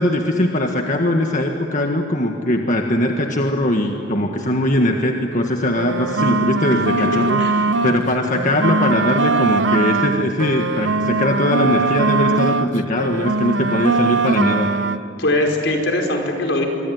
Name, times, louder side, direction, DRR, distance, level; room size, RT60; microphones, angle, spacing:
voice 1, 0.0-7.4 7.8-14.7, left 1 dB, 45° left, 3 dB, 1.6 m, -20 dB
sound 1, 5.7-8.0 8.3-12.7 13.0-15.0, right 3 dB, 80° right, 0.8 m, -20 dB
voice 2, 7.4-7.9 15.2-16.7, left 1 dB, 75° left, 2 dB, 5.2 m, -21 dB
25.5 x 25.0 x 9.5 m, 2.8 s
head